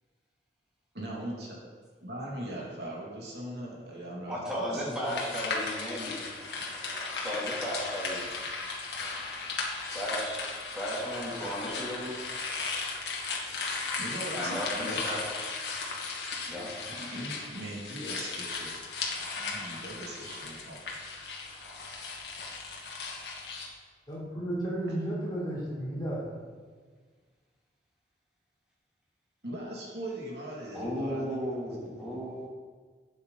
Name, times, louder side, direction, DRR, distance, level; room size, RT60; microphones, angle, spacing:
voice 1, 0.9-1.7 2.0-4.3 4.7-5.4 14.0-15.0 16.9-18.8 19.3-20.8 21.9-22.0 29.4-32.2, right 1 dB, 75° right, -4 dB, 2.5 m, -40 dB
voice 2, 4.3-6.2 7.2-8.3 9.9-10.4 10.7-12.2 14.3-15.2 16.5-16.7 30.7-32.5, equal, 5° right, -7 dB, 3.1 m, -34 dB
sound 1, 5.0-23.7, left 4 dB, 75° left, 1.9 m, -36 dB
voice 3, 24.1-26.2, right 1 dB, 25° left, -7 dB, 3.4 m, -33 dB
12.0 x 8.1 x 4.1 m, 1.5 s
head